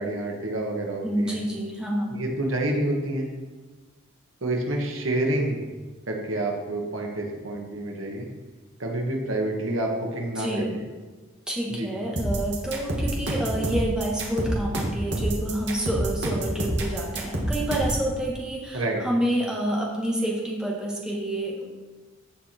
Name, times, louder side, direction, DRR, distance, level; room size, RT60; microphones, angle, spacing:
voice 1, 0.0-1.4 2.1-3.3 4.4-5.7 6.1-8.3 8.8-10.8 11.7-11.9 18.7-19.0, right 1 dB, 80° right, 0 dB, 1.7 m, -28 dB
voice 2, 1.0-2.1 10.3-10.7 11.5-21.6, right 1 dB, 5° right, -4 dB, 1.7 m, -28 dB
sound 1, 12.2-18.0, right 1 dB, 55° right, 1.9 m, -27 dB
15.0 x 5.0 x 4.4 m, 1.3 s
head